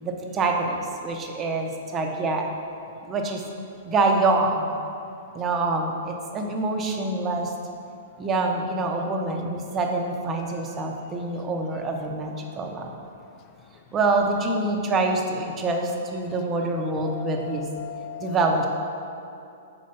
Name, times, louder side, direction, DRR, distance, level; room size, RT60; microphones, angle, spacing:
voice 1, 0.0-2.5 3.0-3.4 3.8-4.7 5.3-7.5 8.2-12.9 13.9-17.7 18.2-18.7, right 3 dB, 20° right, 2 dB, 0.7 m, -25 dB
voice 2, 17.0-18.4, left 8 dB, 35° left, 7 dB, 0.3 m, -37 dB
5.5 x 4.3 x 5.3 m, 2.6 s
hypercardioid pair, 140°, 0 cm